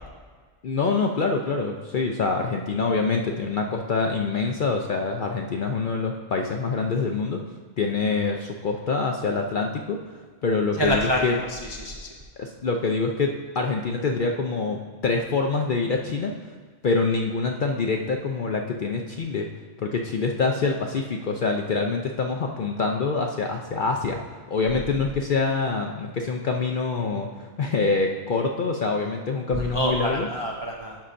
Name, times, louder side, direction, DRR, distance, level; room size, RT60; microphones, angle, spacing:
voice 1, 0.6-7.4 7.8-11.4 12.4-16.5 16.8-19.5 19.8-24.2 24.5-30.3, left 4 dB, 60° left, 2 dB, 0.5 m, -25 dB
voice 2, 10.8-11.2 11.5-12.1 29.5-31.0, equal, 40° right, -2 dB, 0.3 m, -26 dB
12.0 x 5.5 x 2.5 m, 1.5 s
omnidirectional pair, 1.3 m